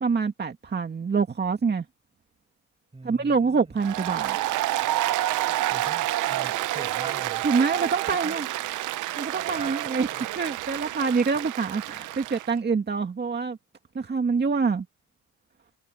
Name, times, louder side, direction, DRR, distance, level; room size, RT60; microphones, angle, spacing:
voice 1, 0.0-1.8 3.0-4.4 7.4-8.5 9.2-10.1 10.4-13.6 13.9-14.9, right 5 dB, 35° right, 2.2 m, -25 dB
voice 2, 2.9-3.8 5.7-7.5 8.2-8.4 9.5-9.8 10.1-10.6 11.1-11.2, right 2 dB, 20° right, 7.2 m, -44 dB
Applause, 3.8-12.5, right 15 dB, 85° right, 0.8 m, -29 dB
cardioid pair, 90°, 30 cm